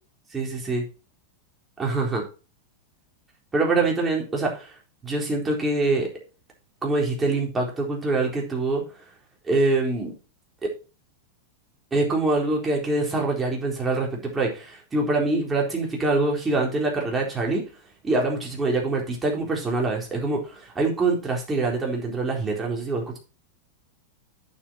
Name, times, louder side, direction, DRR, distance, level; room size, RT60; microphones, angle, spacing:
voice 1, 0.3-0.9 1.8-2.2 3.5-4.8 5.0-6.1 6.8-8.8 9.4-10.1 11.9-17.6 18.0-23.2, right 2 dB, 15° right, -1 dB, 4.1 m, -24 dB
8.7 x 7.7 x 4.5 m, 0.33 s
figure-of-eight pair, 90°, 0 cm